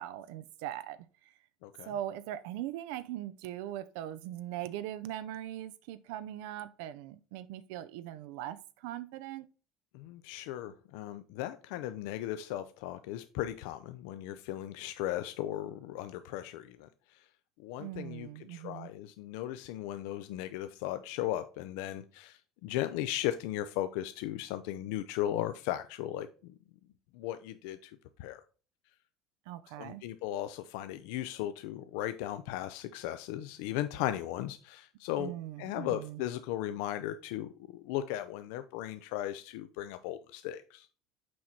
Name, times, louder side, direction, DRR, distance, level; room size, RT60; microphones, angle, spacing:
voice 1, 0.0-1.3 1.9-9.5 17.8-18.9 29.5-30.0 35.2-36.2, right 12 dB, 90° right, 0.4 m, -40 dB
voice 2, 9.9-17.2 17.6-26.5 27.1-27.9 28.2-28.4 29.8-40.9, left 13 dB, 85° left, 0.4 m, -37 dB
6.2 x 4.5 x 4.2 m
cardioid pair, 140°, 0 cm